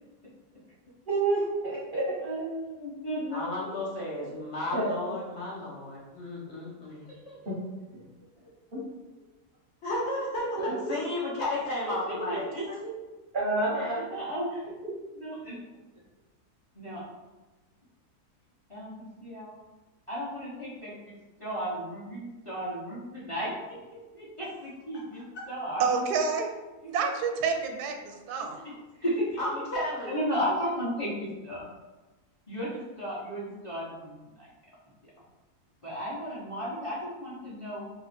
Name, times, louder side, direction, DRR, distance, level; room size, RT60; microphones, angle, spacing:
voice 1, 1.1-2.4 4.7-5.1 7.5-7.6 8.7-8.8 10.6-10.7 13.3-14.0, right 2 dB, 50° right, -6 dB, 0.6 m, -29 dB
voice 2, 2.2-3.7 4.3-4.4 7.2-7.4 11.8-12.6 13.8-14.6 15.2-15.6 16.8-17.0 18.7-19.6 20.1-21.1 21.4-25.8 28.6-28.7 29.0-29.3 30.1-31.7 32.5-34.2 35.8-37.8, equal, 25° left, -7 dB, 0.8 m, -34 dB
voice 3, 3.3-7.2 9.8-12.9 24.9-25.3 28.6-28.7 29.0-29.1 29.4-30.2, left 1 dB, 55° left, -4 dB, 0.9 m, -33 dB
voice 4, 25.8-26.5 26.8-28.6, right 5 dB, 90° right, 5 dB, 1.1 m, -28 dB
2.8 x 2.6 x 4.2 m, 1.1 s
omnidirectional pair, 1.6 m